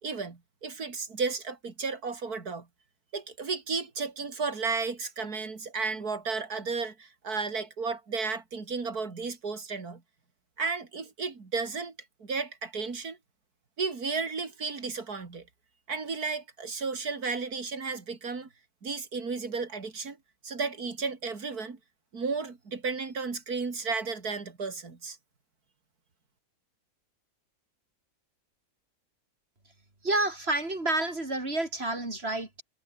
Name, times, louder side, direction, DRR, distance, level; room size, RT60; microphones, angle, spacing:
voice 1, 0.0-2.7 3.1-10.0 10.6-11.9 12.2-13.2 13.8-15.4 15.9-18.5 18.8-20.2 20.4-21.8 22.1-25.2, right 4 dB, 75° right, 3.5 m, -33 dB
voice 2, 30.0-32.6, right 2 dB, 40° right, 4.4 m, -29 dB
omnidirectional pair, 1.6 m